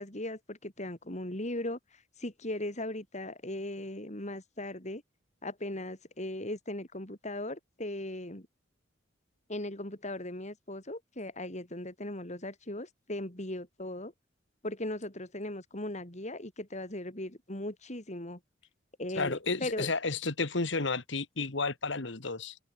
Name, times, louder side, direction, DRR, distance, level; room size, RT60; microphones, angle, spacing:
voice 1, 0.0-1.8 2.2-5.0 5.4-8.5 9.5-14.1 14.6-18.4 19.0-19.9, left 1 dB, 40° left, 5.0 m, -38 dB
voice 2, 19.2-22.6, left 3 dB, 65° left, 1.8 m, -32 dB
open air
head